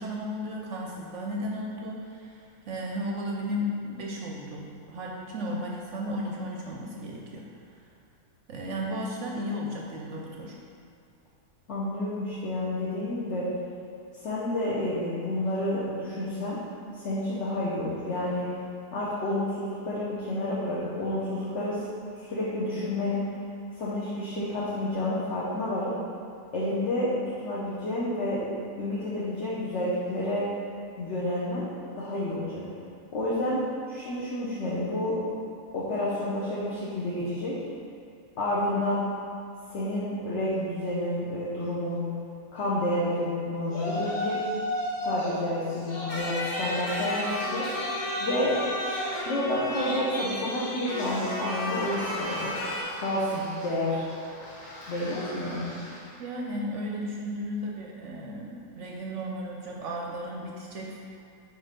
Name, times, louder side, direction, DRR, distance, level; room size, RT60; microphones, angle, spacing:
voice 1, 0.0-7.5 8.5-10.5 56.2-61.0, equal, 60° right, -1 dB, 0.8 m, -34 dB
voice 2, 11.7-13.5 14.2-16.6 16.9-18.5 18.9-21.9 22.1-23.3 23.8-25.9 26.5-27.1 27.4-28.5 28.8-30.5 31.0-31.7 32.0-32.6 33.1-33.6 33.9-35.2 35.7-37.6 38.4-39.1 39.7-42.1 42.5-44.4 45.0-47.9 48.2-48.6 49.2-52.5 53.0-54.0 54.9-55.7, left 1 dB, 55° left, -8 dB, 1.0 m, -29 dB
Yell, 43.7-45.4 45.7-56.1, left 1 dB, 90° left, 2.3 m, -36 dB
sound 1, 46.1-50.3 50.8-52.8, left 1 dB, 30° left, 0.8 m, -34 dB
4.8 x 4.4 x 5.0 m, 2.3 s
omnidirectional pair, 1.7 m